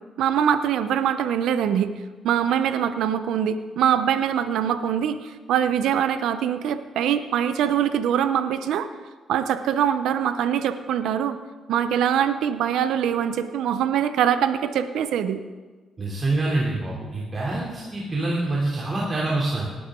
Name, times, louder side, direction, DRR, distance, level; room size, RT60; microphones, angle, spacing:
voice 1, 0.2-1.9 2.2-8.9 9.3-11.4 11.7-15.4, right 9 dB, 80° right, 11 dB, 0.7 m, -23 dB
voice 2, 16.0-19.7, right 2 dB, 35° right, -4 dB, 3.1 m, -26 dB
19.0 x 12.0 x 3.8 m, 1.3 s
cardioid pair, 90°, 0 cm